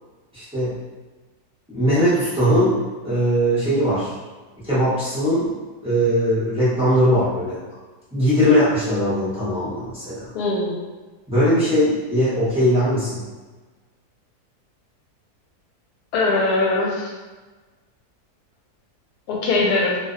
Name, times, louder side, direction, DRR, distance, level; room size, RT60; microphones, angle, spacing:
voice 1, 0.3-0.8 1.7-4.2 4.6-5.5 5.8-7.6 8.1-10.3 11.3-13.2, equal, 5° right, -12 dB, 0.5 m, -20 dB
voice 2, 10.3-10.8 16.1-17.1 19.3-20.0, left 2 dB, 85° left, -1 dB, 1.1 m, -21 dB
2.6 x 2.0 x 2.4 m, 1.3 s
omnidirectional pair, 1.6 m